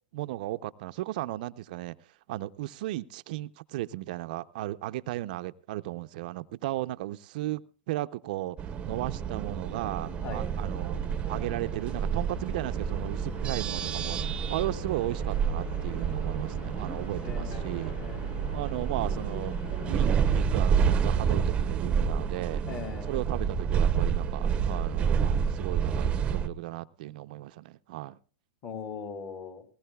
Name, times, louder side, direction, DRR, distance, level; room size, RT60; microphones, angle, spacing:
voice 1, 0.1-1.9 2.3-8.6 8.8-11.0 11.3-17.9 18.5-19.5 19.9-22.6 23.1-28.2, right 16 dB, 60° right, 11 dB, 0.5 m, -35 dB
sound 1, 8.4-21.4, left 1 dB, 75° left, 4.4 m, -47 dB
sound 2, 8.6-26.5, right 7 dB, 20° right, 0.8 m, -29 dB
sound 3, 14.5-16.9 17.5-19.0, left 5 dB, 50° left, 4.1 m, -55 dB
voice 2, 17.2-18.3 22.7-23.2 28.6-29.7, left 5 dB, 30° left, 7 dB, 2.6 m, -40 dB
20.0 x 18.5 x 2.3 m, 0.40 s
hypercardioid pair, 135°, 5 cm